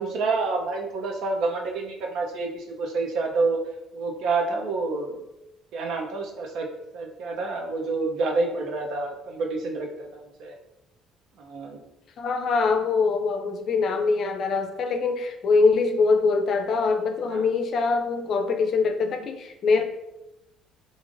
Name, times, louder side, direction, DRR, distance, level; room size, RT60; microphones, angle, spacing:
voice 1, 0.0-3.6 3.9-5.2 5.7-6.7 6.9-10.5 11.4-11.8 17.3-17.5, right 3 dB, 75° right, 2 dB, 0.6 m, -28 dB
voice 2, 12.2-19.8, left 4 dB, 55° left, 6 dB, 0.4 m, -23 dB
3.1 x 2.5 x 2.5 m, 0.92 s
cardioid pair, 90°, 0 cm